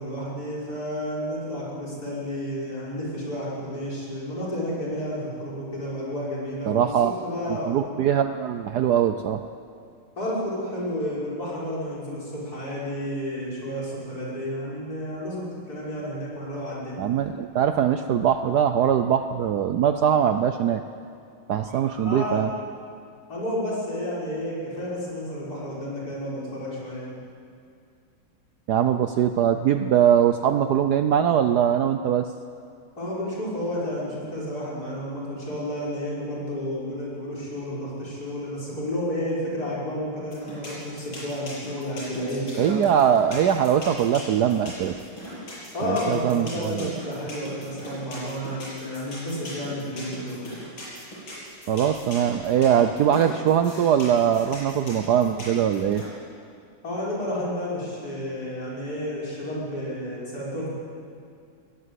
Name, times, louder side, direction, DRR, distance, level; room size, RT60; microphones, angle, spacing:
voice 1, 0.0-7.8 10.2-17.0 22.0-22.5 23.3-27.1 33.0-42.9 45.7-50.4 56.8-60.7, left 1 dB, 45° left, -6 dB, 6.4 m, -31 dB
voice 2, 6.7-7.1 7.5-9.4 17.0-20.8 21.5-22.5 28.7-32.3 42.6-45.0 45.8-46.9 51.7-56.0, right 9 dB, 65° right, 8 dB, 1.1 m, -22 dB
sound 1, 40.3-56.0, left 1 dB, 75° left, 8.2 m, -39 dB
20.5 x 18.5 x 8.2 m, 2.3 s
omnidirectional pair, 2.2 m